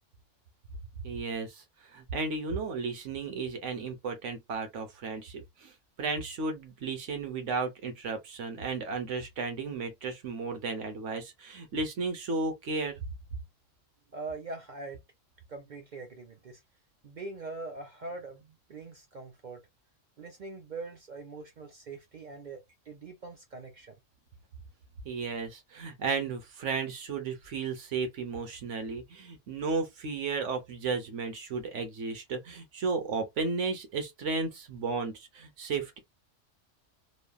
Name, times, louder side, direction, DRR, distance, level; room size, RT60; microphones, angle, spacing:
voice 1, 1.0-5.7 6.0-13.0 25.0-36.0, right 4 dB, 70° right, 1.2 m, -34 dB
voice 2, 14.1-15.0 15.5-16.6 17.0-19.6 20.2-22.6 22.9-23.9, right 3 dB, 50° right, 0.5 m, -42 dB
3.1 x 2.2 x 2.3 m
omnidirectional pair, 1.3 m